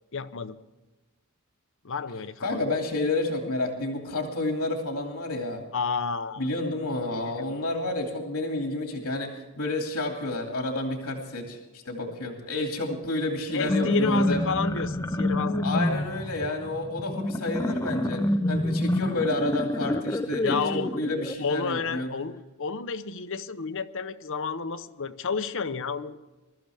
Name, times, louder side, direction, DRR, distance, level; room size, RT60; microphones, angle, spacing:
voice 1, 0.1-0.6 1.8-2.7 5.7-6.4 7.1-7.6 13.5-16.0 20.4-21.0 21.4-26.2, left 5 dB, 60° left, 12 dB, 0.8 m, -31 dB
voice 2, 2.4-5.6 6.4-14.6 15.6-22.1, left 2 dB, 90° left, 2 dB, 2.4 m, -30 dB
sound 1, 13.5-21.3, left 1 dB, 15° left, 0.5 m, -28 dB
22.5 x 13.5 x 3.5 m, 1.1 s
head